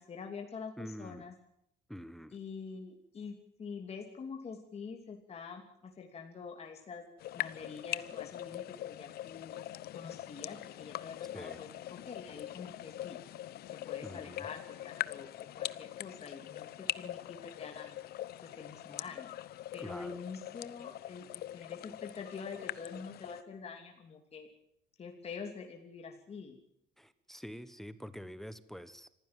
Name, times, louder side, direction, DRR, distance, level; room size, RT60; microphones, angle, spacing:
voice 1, 0.0-1.3 2.3-7.0 7.3-9.5 9.9-13.2 13.9-18.0 18.4-19.3 19.7-24.5 25.0-26.6, left 5 dB, 40° left, 3 dB, 2.8 m, -46 dB
voice 2, 0.8-1.2 1.9-2.4 11.3-11.6 14.0-14.5 19.8-20.2 27.0-29.1, equal, ahead, 13 dB, 1.2 m, -46 dB
sound 1, 7.2-23.4, left 13 dB, 70° left, 0.8 m, -42 dB
26.0 x 15.5 x 7.6 m, 0.79 s
cardioid pair, 110°, 17 cm